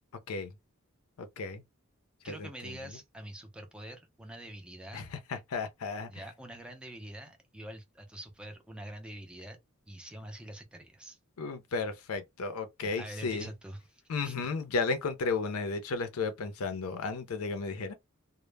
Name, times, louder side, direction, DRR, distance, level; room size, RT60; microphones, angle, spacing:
voice 1, 1.2-1.6 2.3-2.8 4.9-6.1 11.4-13.5 14.1-17.9, left 4 dB, 85° left, 0.5 m, -34 dB
voice 2, 2.2-5.0 6.1-9.6 9.9-11.2 12.8-14.5, right 1 dB, 5° right, 0.4 m, -45 dB
2.1 x 2.0 x 3.1 m
head